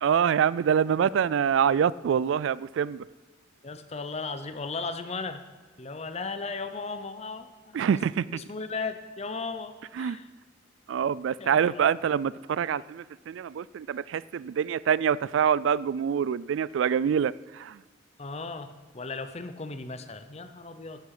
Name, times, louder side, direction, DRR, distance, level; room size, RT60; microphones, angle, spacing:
voice 1, 0.0-3.0 7.7-8.3 10.0-10.2 10.9-17.8, right 8 dB, 70° right, 20 dB, 0.3 m, -25 dB
voice 2, 3.6-5.4 5.8-7.9 8.3-10.3 11.4-11.9 18.2-21.0, left 4 dB, 35° left, 10 dB, 0.8 m, -36 dB
14.0 x 12.5 x 4.9 m, 1.3 s
head